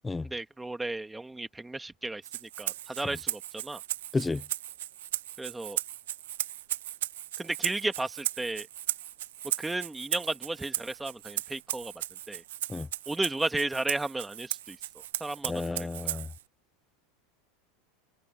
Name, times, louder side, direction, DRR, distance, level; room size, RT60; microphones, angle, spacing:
voice 1, 0.2-3.8 5.4-5.8 7.4-8.7 9.6-11.9 12.3-12.4 13.1-14.8 15.2-16.2, right 2 dB, 5° right, 1.8 m, -34 dB
Rattle (instrument), 2.2-16.4, right 13 dB, 85° right, 1.0 m, -36 dB
voice 2, 4.1-4.4 12.7-12.9 15.4-16.3, left 3 dB, 10° left, 0.3 m, -31 dB
supercardioid pair, 140°, 0 cm